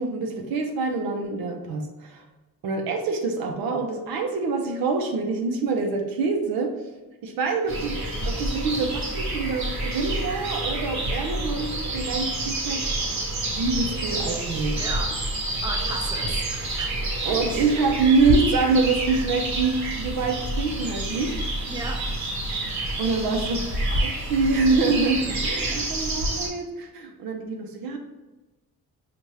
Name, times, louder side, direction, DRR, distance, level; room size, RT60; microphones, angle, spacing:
voice 1, 0.0-2.2 2.6-6.7 7.2-12.9 13.6-14.8 17.2-21.4 23.0-23.7 24.0-28.0, right 4 dB, 90° right, 3 dB, 0.7 m, -25 dB
sound 1, 7.7-26.5, right 1 dB, 55° right, 1.3 m, -28 dB
voice 2, 14.8-15.3 15.6-16.9 17.3-17.4 21.7-22.2 25.6-26.0, right 2 dB, 10° right, 2 dB, 0.6 m, -35 dB
5.3 x 2.4 x 3.2 m, 1.1 s
cardioid pair, 85°, 35 cm